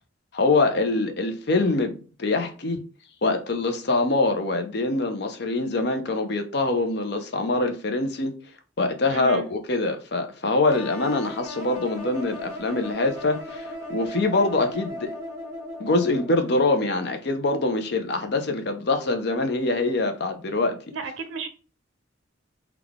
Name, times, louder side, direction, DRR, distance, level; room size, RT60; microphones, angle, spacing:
voice 1, 0.3-1.9 2.2-2.8 3.2-8.3 8.8-15.1 15.8-20.8, left 2 dB, 55° left, 0.6 m, -24 dB
voice 2, 9.1-9.5 20.9-21.5, right 4 dB, 75° right, 0.5 m, -33 dB
sound 1, 10.7-16.5, left 1 dB, 15° right, 1.2 m, -37 dB
3.6 x 2.3 x 3.5 m
head